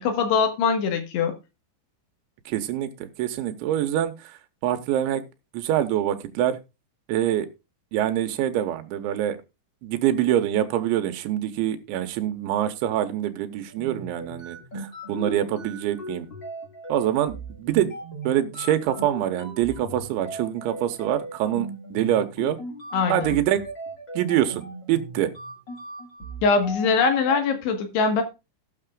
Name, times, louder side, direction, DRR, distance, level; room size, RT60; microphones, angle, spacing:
voice 1, 0.0-1.3 22.9-23.4 26.4-28.2, left 5 dB, 70° left, 3.4 m, -22 dB
voice 2, 2.5-2.9 3.2-4.1 4.6-5.2 5.5-6.6 7.1-7.5 7.9-9.4 9.8-16.3 16.9-17.9 18.3-22.6 23.1-23.6 24.2-25.3, right 11 dB, 90° right, 3.2 m, -25 dB
sound 1, 13.7-27.4, right 1 dB, 45° left, 1.5 m, -38 dB
18.5 x 6.7 x 2.4 m
omnidirectional pair, 5.3 m